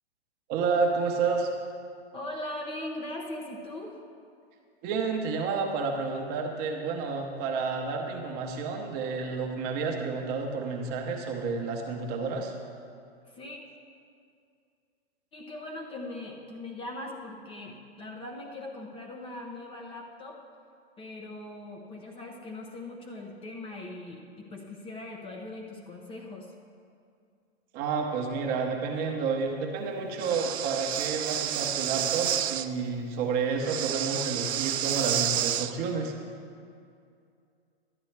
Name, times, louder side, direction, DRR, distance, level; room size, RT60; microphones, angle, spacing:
voice 1, 0.5-1.5 4.8-12.5 27.7-36.1, right 4 dB, 30° right, 2 dB, 1.0 m, -30 dB
voice 2, 2.1-4.0 13.3-13.6 15.3-20.4 21.0-26.5, left 1 dB, 15° left, 0 dB, 0.8 m, -40 dB
Breathing, 30.2-32.7 33.6-35.7, right 11 dB, 80° right, 0.6 m, -30 dB
12.0 x 9.0 x 3.3 m, 2.4 s
hypercardioid pair, 135°, 32 cm